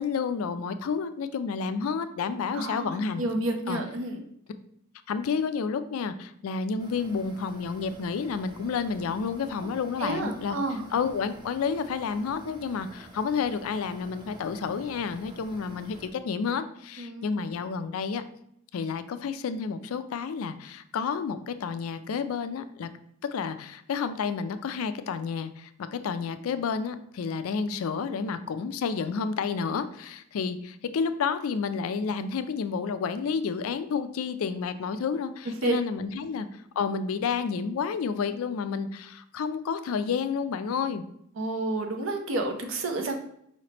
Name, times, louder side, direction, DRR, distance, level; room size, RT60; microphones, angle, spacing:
voice 1, 0.0-3.2 3.7-3.8 5.1-10.6 10.9-18.2 18.7-22.9 23.3-36.5 36.8-41.0, left 5 dB, 80° left, 11 dB, 0.4 m, -30 dB
voice 2, 2.5-4.2 9.6-9.7 10.0-10.8 17.0-17.3 35.6-35.8 41.4-43.2, right 2 dB, 65° right, 4 dB, 0.6 m, -30 dB
sound 1, 6.8-16.1, right 1 dB, 20° right, 0.6 m, -50 dB
4.9 x 3.2 x 2.9 m, 0.72 s
head